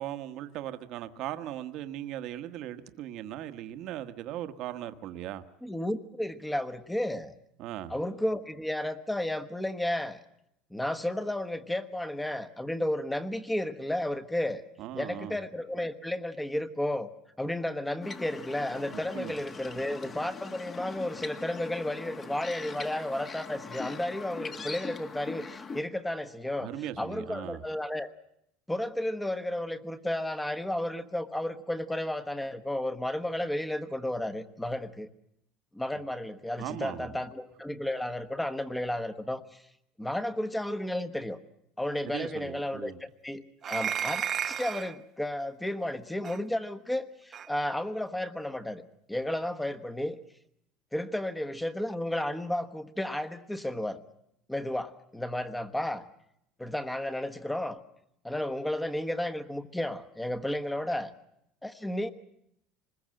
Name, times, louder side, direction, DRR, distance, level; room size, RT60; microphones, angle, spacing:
voice 1, 0.0-5.4 7.6-8.0 14.8-15.4 19.1-19.4 26.6-27.6 36.6-37.1 42.0-43.0, right 12 dB, 60° right, 9 dB, 1.3 m, -38 dB
voice 2, 5.6-7.3 7.9-10.2 10.7-14.6 14.9-17.1 17.4-26.7 27.0-28.1 28.7-35.1 35.7-39.6 40.0-41.4 41.8-43.4 43.7-48.8 49.1-50.2 50.9-54.0 54.5-56.0 56.6-57.8 58.2-61.1 61.6-62.1, left 1 dB, 5° left, 11 dB, 1.3 m, -33 dB
sound 1, 18.0-25.8, left 4 dB, 25° left, 1.5 m, -41 dB
sound 2, 43.6-45.0 46.2-46.4 47.3-47.5, right 9 dB, 35° right, 0.8 m, -32 dB
25.5 x 20.5 x 7.7 m, 0.78 s
cardioid pair, 130°, 0 cm